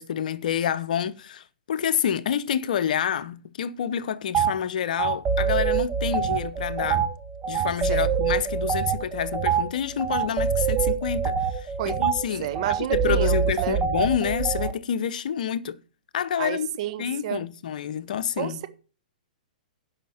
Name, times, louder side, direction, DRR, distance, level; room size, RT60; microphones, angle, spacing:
voice 1, 0.0-7.1 7.5-12.5 12.9-15.8 16.1-16.7 17.0-18.6, left 8 dB, 65° left, 0.8 m, -28 dB
sound 1, 4.3-4.5 5.0-14.7, right 7 dB, 25° right, 1.4 m, -25 dB
voice 2, 12.4-13.8 16.4-17.4 18.4-18.7, right 12 dB, 50° right, 1.4 m, -30 dB
11.0 x 5.8 x 7.1 m
hypercardioid pair, 120°, 5 cm